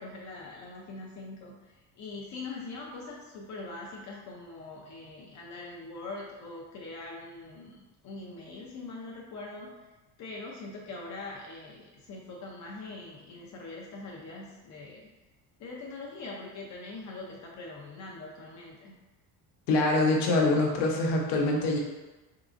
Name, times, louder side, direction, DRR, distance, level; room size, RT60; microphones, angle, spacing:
voice 1, 0.0-9.7 10.2-15.0 15.6-18.9, left 3 dB, 45° left, -3 dB, 0.6 m, -42 dB
voice 2, 19.7-21.8, left 2 dB, 75° left, -1 dB, 1.0 m, -24 dB
4.0 x 3.7 x 2.5 m, 1.1 s
cardioid pair, 170°, 42 cm